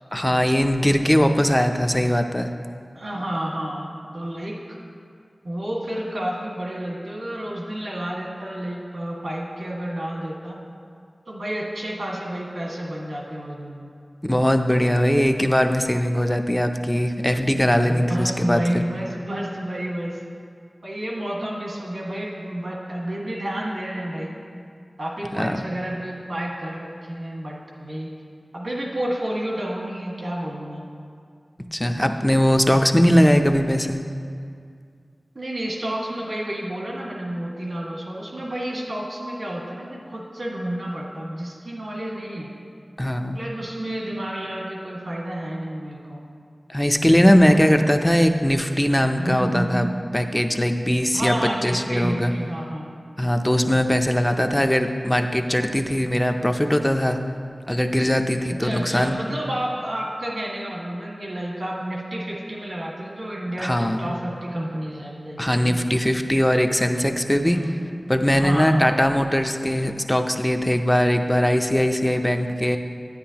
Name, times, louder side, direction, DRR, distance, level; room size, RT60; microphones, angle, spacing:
voice 1, 0.1-2.5 14.3-18.8 25.3-25.6 31.7-34.0 43.0-43.4 46.7-49.9 50.1-52.3 53.2-57.2 57.7-59.2 63.6-64.2 65.4-67.6 68.1-72.8, equal, 10° left, 6 dB, 0.5 m, -20 dB
voice 2, 2.9-3.9 4.1-4.8 5.4-10.6 11.2-13.9 17.9-20.2 20.8-24.4 25.0-28.1 28.5-30.8 35.3-42.5 43.3-46.2 47.5-47.7 49.2-49.9 51.1-52.9 58.6-65.8 67.4-67.9 68.3-68.9, right 1 dB, 80° right, -3 dB, 1.7 m, -30 dB
10.5 x 9.7 x 2.9 m, 2.2 s
wide cardioid pair, 70°, 0 cm